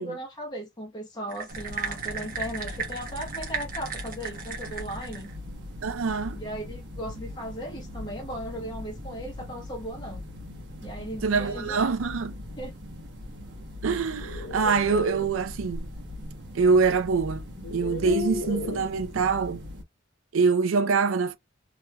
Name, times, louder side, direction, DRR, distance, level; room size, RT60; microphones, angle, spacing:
voice 1, 0.0-5.3 6.3-10.2 10.8-11.9 12.6-12.7, equal, 20° left, 1.0 m, -37 dB
sound 1, 1.3-5.3, right 5 dB, 45° right, 1.0 m, -35 dB
sound 2, 1.5-19.8, left 1 dB, 65° right, 1.1 m, -40 dB
voice 2, 5.8-6.4 11.2-12.4 13.8-15.9 16.5-17.4 17.7-19.6 20.3-21.4, right 5 dB, 90° right, 0.5 m, -24 dB
sound 3, 14.0-15.3 16.7-16.8 17.5-18.9, left 4 dB, 75° left, 0.6 m, -34 dB
3.0 x 2.9 x 2.2 m
head